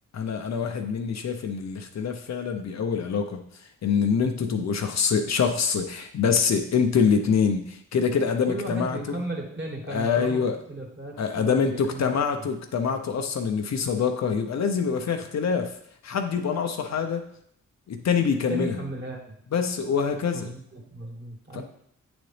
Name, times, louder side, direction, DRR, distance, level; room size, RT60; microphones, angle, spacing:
voice 1, 0.1-9.2 9.9-10.6 11.2-15.7 16.0-17.2 17.9-18.8 19.5-20.5 21.5-21.6, left 6 dB, 60° left, 5 dB, 0.8 m, -25 dB
voice 2, 8.4-10.4 10.7-12.2 18.5-19.3 20.3-21.6, right 2 dB, 35° right, -2 dB, 2.5 m, -35 dB
8.4 x 4.0 x 3.3 m, 0.69 s
supercardioid pair, 45°, 32 cm